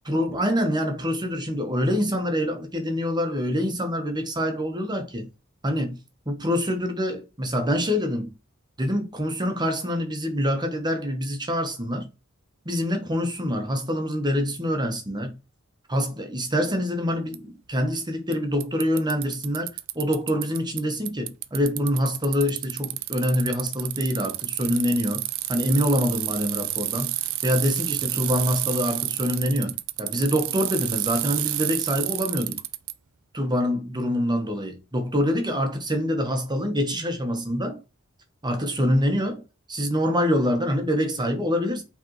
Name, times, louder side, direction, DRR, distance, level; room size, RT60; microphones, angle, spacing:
voice 1, 0.1-5.3 5.6-6.0 6.3-8.3 8.8-12.1 12.6-15.4 15.9-27.1 27.4-32.6 33.3-37.8 38.4-41.8, equal, 20° right, 1.1 m, -25 dB
Bicycle, 17.3-17.4 18.3-18.4 18.6-20.8 21.1-32.9, right 16 dB, 70° right, 0.4 m, -30 dB
5.0 x 3.4 x 3.0 m
head